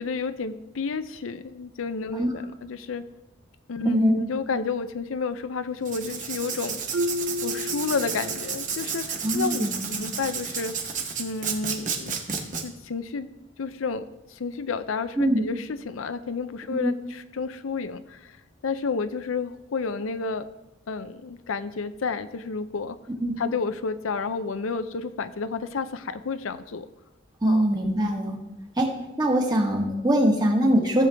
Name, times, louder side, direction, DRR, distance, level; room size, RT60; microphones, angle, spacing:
voice 1, 0.0-3.0 3.7-6.8 7.4-10.8 11.2-13.3 13.6-14.1 14.3-18.3 18.6-20.5 20.9-23.0 23.4-26.9 27.5-27.6, left 4 dB, 85° left, 11 dB, 0.5 m, -31 dB
Writing, 5.8-12.6, right 6 dB, 40° right, 1.1 m, -32 dB
Marimba xylophone, 6.9-8.7, left 1 dB, 75° right, 0.5 m, -31 dB
voice 2, 9.2-9.9 15.2-15.4 16.8-16.9 23.2-23.3 27.4-28.4 28.8-28.9 29.2-31.1, right 1 dB, 20° right, 1 dB, 1.4 m, -22 dB
14.5 x 7.4 x 3.4 m, 0.95 s
head